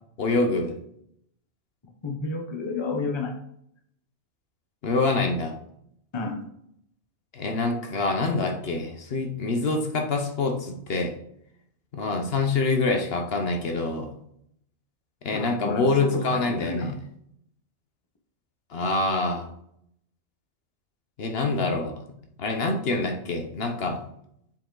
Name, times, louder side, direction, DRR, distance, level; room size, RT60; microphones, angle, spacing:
voice 1, 0.2-0.7 4.8-5.5 7.3-11.1 11.9-14.1 15.2-16.9 18.7-19.5 21.2-21.9 22.4-24.0, left 3 dB, 60° left, 4 dB, 1.1 m, -26 dB
voice 2, 2.0-3.3 6.1-6.4 15.3-17.0, left 3 dB, 25° left, 3 dB, 0.8 m, -31 dB
7.4 x 4.8 x 3.8 m, 0.72 s
omnidirectional pair, 1.1 m